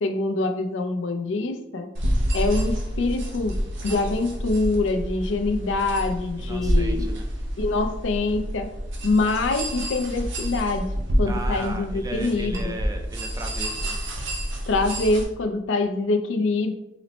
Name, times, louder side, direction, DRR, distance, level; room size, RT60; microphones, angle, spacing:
voice 1, 0.0-1.9 2.3-3.6 3.8-7.1 7.6-8.7 9.0-10.9 11.2-12.8 14.7-16.7, left 3 dB, 75° left, 7 dB, 0.4 m, -25 dB
sound 1, 1.9-15.2, equal, 70° right, 0.8 m, -28 dB
voice 2, 6.4-7.3 11.3-14.0, right 2 dB, 20° right, 5 dB, 0.4 m, -36 dB
4.0 x 2.0 x 4.2 m, 0.89 s
head